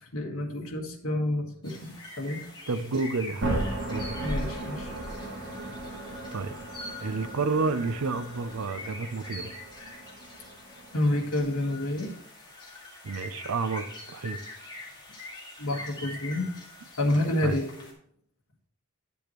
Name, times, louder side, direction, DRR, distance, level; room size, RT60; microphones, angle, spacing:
voice 1, 0.0-2.4 4.2-4.9 10.9-12.1 15.6-16.5 17.0-17.7, left 1 dB, 80° left, 2 dB, 1.5 m, -29 dB
sound 1, 1.6-17.9, left 2 dB, 20° left, 2.0 m, -44 dB
voice 2, 2.7-4.1 6.3-6.5 7.0-9.5 13.0-14.4 17.4-17.5, right 4 dB, 80° right, 11 dB, 0.6 m, -30 dB
sound 2, 3.4-11.4, right 1 dB, 50° right, 2.5 m, -36 dB
9.9 x 6.9 x 3.0 m, 0.71 s
head